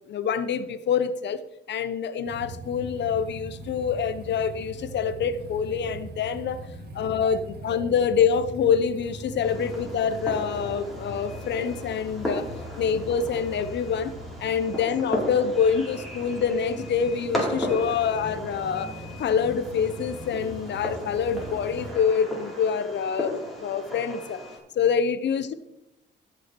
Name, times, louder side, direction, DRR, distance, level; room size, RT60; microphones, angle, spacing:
voice 1, 0.1-1.4 1.7-6.6 6.9-12.5 12.8-14.1 14.4-24.4 24.8-25.5, left 7 dB, 65° left, 13 dB, 0.8 m, -26 dB
sound 1, 2.2-21.9, right 1 dB, 55° right, 2.1 m, -41 dB
Fireworks, 9.4-24.6, equal, ahead, 4.2 m, -35 dB
14.5 x 6.3 x 4.5 m, 0.91 s
cardioid pair, 90°, 20 cm